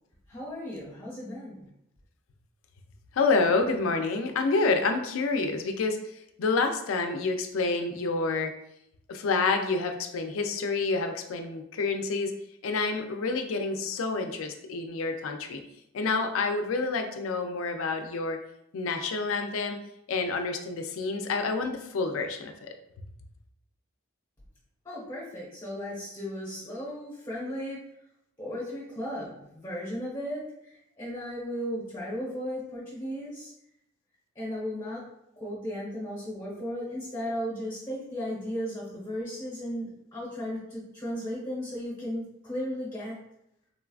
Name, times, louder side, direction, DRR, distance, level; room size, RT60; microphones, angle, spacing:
voice 1, 0.3-1.7 24.8-27.8 28.4-33.5 34.3-35.0 35.4-43.2, equal, 20° left, -7 dB, 1.0 m, -35 dB
voice 2, 3.1-6.0 6.4-8.5 9.1-12.3 12.6-15.6 15.9-18.4 18.7-19.8 20.1-22.7, left 3 dB, 85° left, 6 dB, 0.4 m, -28 dB
3.7 x 2.3 x 2.3 m, 0.79 s
head